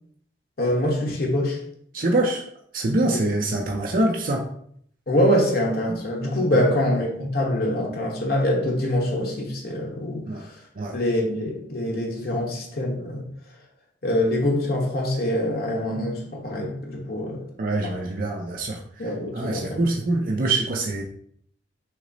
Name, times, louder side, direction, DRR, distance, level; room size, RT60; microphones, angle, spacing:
voice 1, 0.6-1.6 3.1-3.2 5.1-10.6 10.9-13.3 14.0-17.4 17.8-18.0 19.0-19.8, left 1 dB, 50° left, -1 dB, 0.9 m, -24 dB
voice 2, 1.9-2.4 2.7-4.5 6.5-6.7 10.3-10.4 10.8-11.0 17.6-21.0, right 2 dB, 45° right, 0 dB, 0.5 m, -25 dB
5.9 x 2.0 x 4.0 m, 0.66 s
head